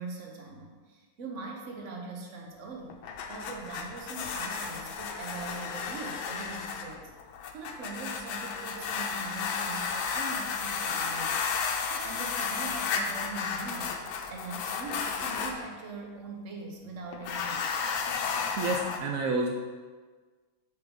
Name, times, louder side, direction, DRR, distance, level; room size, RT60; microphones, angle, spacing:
voice 1, 0.0-3.0 3.3-7.1 7.5-11.5 11.9-14.0 14.3-17.7, right 3 dB, 50° right, 1 dB, 1.1 m, -41 dB
sound 1, 2.9-15.6 17.1-19.0, left 5 dB, 75° left, 1.5 m, -33 dB
voice 2, 18.6-19.5, right 3 dB, 75° right, 2 dB, 0.7 m, -29 dB
7.1 x 6.0 x 3.8 m, 1.4 s
omnidirectional pair, 2.2 m